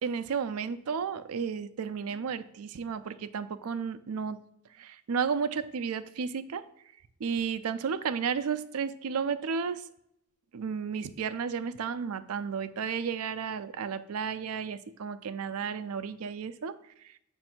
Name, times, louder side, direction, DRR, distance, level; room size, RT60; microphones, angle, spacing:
voice 1, 0.0-4.4 4.8-6.7 7.2-9.9 10.5-17.2, right 6 dB, 85° right, 12 dB, 0.4 m, -33 dB
7.6 x 2.6 x 5.8 m, 0.75 s
head